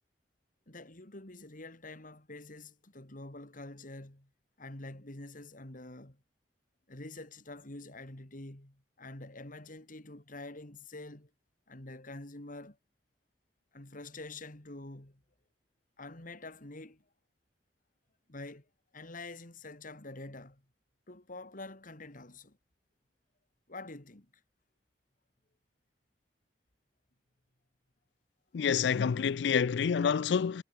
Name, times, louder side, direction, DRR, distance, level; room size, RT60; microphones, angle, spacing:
voice 1, 0.7-4.3 4.6-6.2 6.9-11.3 11.7-12.8 13.7-15.2 16.0-17.0 18.3-18.7 18.9-20.6 21.1-22.6 23.7-24.3, left 2 dB, 50° left, 2.9 m, -46 dB
voice 2, 28.5-30.6, left 6 dB, 75° left, 0.4 m, -28 dB
head